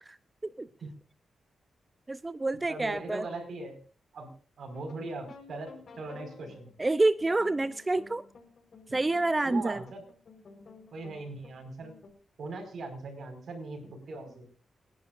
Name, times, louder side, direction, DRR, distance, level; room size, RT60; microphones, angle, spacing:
voice 1, 2.1-3.3 6.8-8.3 8.9-9.8, right 2 dB, 25° right, 15 dB, 0.5 m, -28 dB
voice 2, 2.7-3.8 4.1-4.3 4.6-6.7 9.4-10.0 10.9-11.9 12.4-14.4, right 3 dB, 70° right, 6 dB, 4.9 m, -40 dB
sound 1, 4.7-12.1, left 4 dB, 60° left, 4.2 m, -53 dB
28.5 x 11.0 x 2.5 m, 0.38 s
cardioid pair, 70°, 0 cm